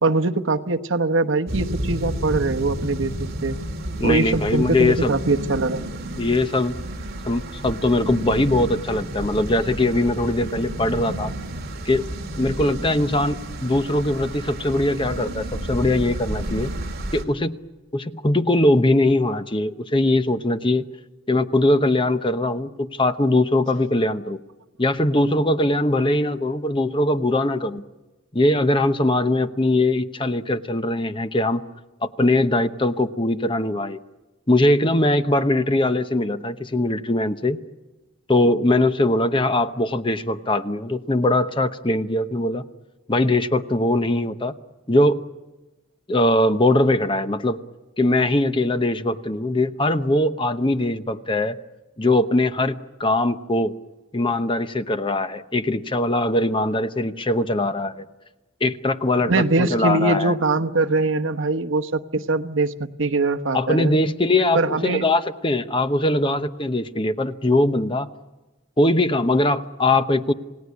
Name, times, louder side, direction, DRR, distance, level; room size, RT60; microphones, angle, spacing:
voice 1, 0.0-3.6 4.0-5.9 59.3-62.7 63.0-64.0 64.5-65.0, right 3 dB, 70° right, 7 dB, 1.1 m, -22 dB
sound 1, 1.5-17.2, right 1 dB, 50° right, 2.7 m, -31 dB
voice 2, 4.0-5.1 6.2-6.7 7.2-11.3 11.8-12.1 12.4-16.7 17.1-17.5 17.9-20.9 21.3-24.4 24.8-27.8 28.3-31.6 32.0-34.0 34.5-37.6 38.3-42.6 43.1-44.5 44.9-45.2 46.1-47.6 48.0-51.6 52.0-53.7 54.1-58.0 58.6-60.3 63.5-68.1 68.8-70.3, left 1 dB, 25° left, 10 dB, 0.9 m, -21 dB
28.0 x 18.0 x 9.6 m, 1.1 s
head